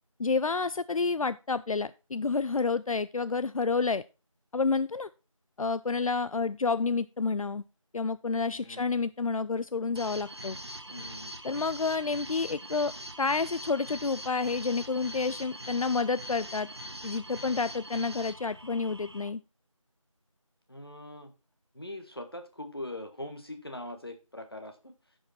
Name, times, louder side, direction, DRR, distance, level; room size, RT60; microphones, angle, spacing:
voice 1, 0.2-4.0 4.5-5.1 5.6-7.6 7.9-10.6 11.4-16.7 17.0-19.4, left 4 dB, 80° left, 16 dB, 0.4 m, -29 dB
sound 1, 9.9-19.3, right 1 dB, 50° right, 1.0 m, -42 dB
voice 2, 10.9-11.3 20.7-21.3 21.7-24.9, left 1 dB, 45° left, 6 dB, 1.3 m, -42 dB
10.5 x 5.3 x 4.1 m, 0.29 s
figure-of-eight pair, 175°, 18 cm